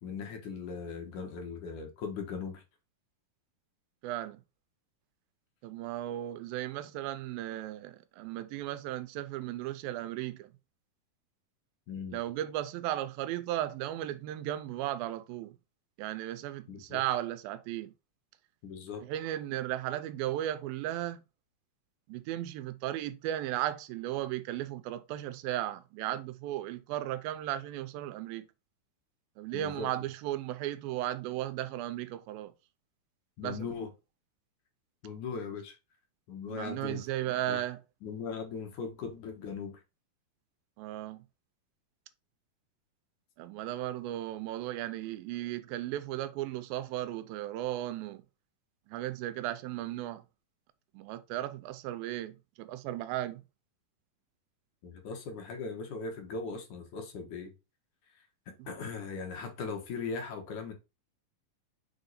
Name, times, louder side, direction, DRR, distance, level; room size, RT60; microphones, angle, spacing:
voice 1, 0.0-2.6 11.9-12.2 16.7-17.0 18.6-19.0 29.5-29.9 33.4-33.9 35.0-35.8 36.3-37.0 37.5-37.6 38.0-39.8 54.8-57.5 58.5-60.7, left 5 dB, 65° left, 2.6 m, -39 dB
voice 2, 4.0-4.4 5.6-10.5 12.1-15.6 16.0-17.9 19.0-21.2 22.1-28.4 29.4-32.5 33.4-33.6 36.5-37.8 40.8-41.2 43.4-48.2 48.9-50.2 50.9-53.4, right 13 dB, 90° right, 2.4 m, -35 dB
6.5 x 3.9 x 4.1 m
omnidirectional pair, 4.1 m